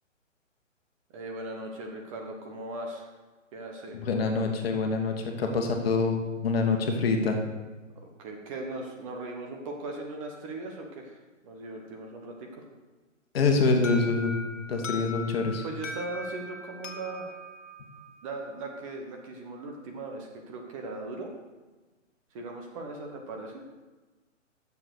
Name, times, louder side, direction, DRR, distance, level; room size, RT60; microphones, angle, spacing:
voice 1, 1.1-3.1 3.5-4.0 8.0-11.2 11.4-12.6 14.9-15.0 15.6-17.3 18.2-21.3 22.3-23.6, right 2 dB, 25° right, 2 dB, 1.1 m, -38 dB
voice 2, 3.9-7.4 13.3-14.3 14.7-15.6, left 4 dB, 50° left, 3 dB, 1.5 m, -26 dB
Alarm, 13.8-18.6, left 3 dB, 70° left, 1.3 m, -40 dB
7.6 x 6.9 x 6.4 m, 1.2 s
hypercardioid pair, 145°, 39 cm